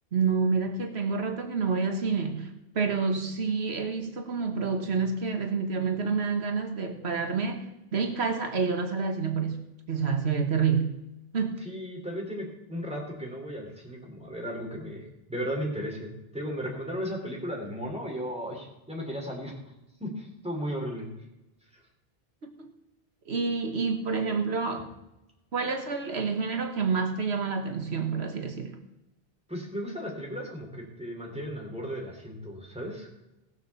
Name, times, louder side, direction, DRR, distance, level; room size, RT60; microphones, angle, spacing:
voice 1, 0.1-7.7 7.9-9.6 9.9-10.9 11.3-11.6 22.4-22.7 23.3-24.9 25.5-28.8, right 5 dB, 90° right, 5 dB, 1.7 m, -28 dB
voice 2, 11.6-19.5 20.0-21.1 29.5-33.1, equal, 5° right, -1 dB, 3.5 m, -35 dB
17.5 x 6.8 x 7.0 m, 0.94 s
omnidirectional pair, 1.1 m